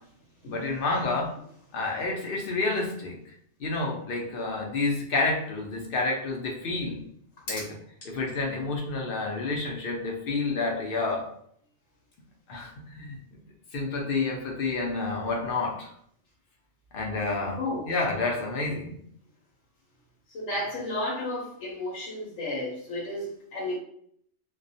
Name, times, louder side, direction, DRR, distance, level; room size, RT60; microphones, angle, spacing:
voice 1, 0.5-1.3 1.7-3.2 3.6-7.0 7.5-7.7 8.0-11.3 12.5-13.2 13.7-15.9 16.9-17.6 17.8-19.0, left 3 dB, 60° left, 0 dB, 0.7 m, -29 dB
voice 2, 20.3-23.8, left 1 dB, 90° left, -4 dB, 1.0 m, -32 dB
2.3 x 2.1 x 2.6 m, 0.65 s
omnidirectional pair, 1.2 m